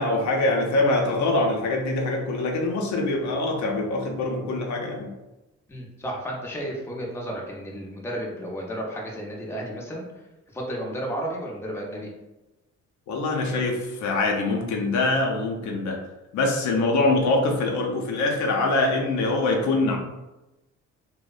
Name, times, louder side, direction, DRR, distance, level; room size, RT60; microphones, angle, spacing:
voice 1, 0.0-5.1 13.1-16.0 16.3-20.0, left 2 dB, 70° left, 0 dB, 0.5 m, -24 dB
voice 2, 5.7-10.3 10.5-12.1, equal, 10° left, -2 dB, 0.6 m, -33 dB
2.6 x 2.0 x 2.4 m, 0.99 s
cardioid pair, 90°, 30 cm